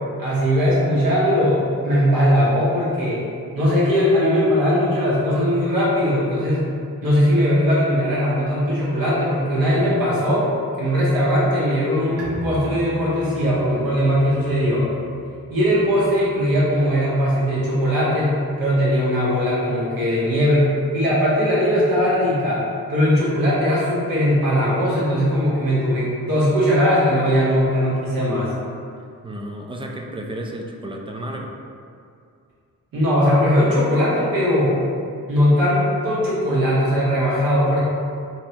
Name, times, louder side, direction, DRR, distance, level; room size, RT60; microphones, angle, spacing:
voice 1, 0.2-3.2 3.5-6.7 7.0-10.5 10.8-14.9 15.5-22.6 22.9-28.5 32.9-34.8 35.3-37.8, equal, 70° right, -8 dB, 1.0 m, -19 dB
Bowed string instrument, 12.2-17.8, right 1 dB, 40° right, 0.8 m, -40 dB
voice 2, 29.2-31.6, right 1 dB, 15° right, 0 dB, 0.4 m, -32 dB
3.5 x 2.1 x 2.8 m, 2.4 s
cardioid pair, 55°, 36 cm